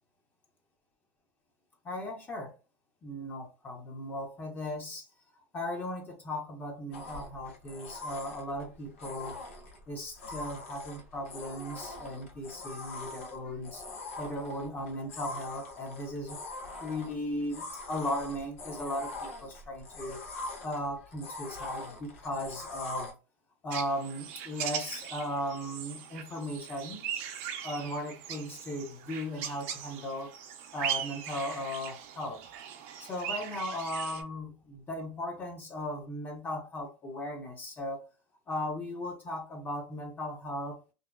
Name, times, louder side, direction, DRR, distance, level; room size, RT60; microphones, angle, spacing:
voice 1, 1.8-2.5 3.0-5.0 5.5-9.4 9.9-13.8 14.2-16.4 16.8-20.2 20.6-23.1 23.6-27.1 27.6-30.3 30.7-32.4 33.0-38.0 38.5-40.9, left 1 dB, 25° left, 0.8 m, -37 dB
sound 1, 6.9-23.1, left 2 dB, 90° left, 0.8 m, -43 dB
sound 2, 23.7-34.2, right 9 dB, 70° right, 0.6 m, -39 dB
2.7 x 2.0 x 2.2 m
supercardioid pair, 105°, 7 cm